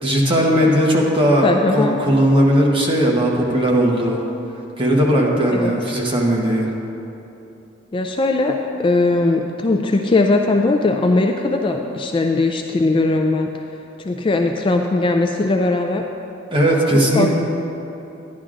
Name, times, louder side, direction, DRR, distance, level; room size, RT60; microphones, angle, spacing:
voice 1, 0.0-1.5 1.7-4.2 4.8-6.7 16.5-17.3, equal, 25° right, -2 dB, 1.1 m, -17 dB
voice 2, 1.4-1.9 5.5-5.7 7.9-13.5 14.0-16.0 16.7-16.8 17.1-17.3, left 2 dB, 25° left, 4 dB, 0.3 m, -19 dB
11.0 x 10.5 x 2.5 m, 2.9 s
head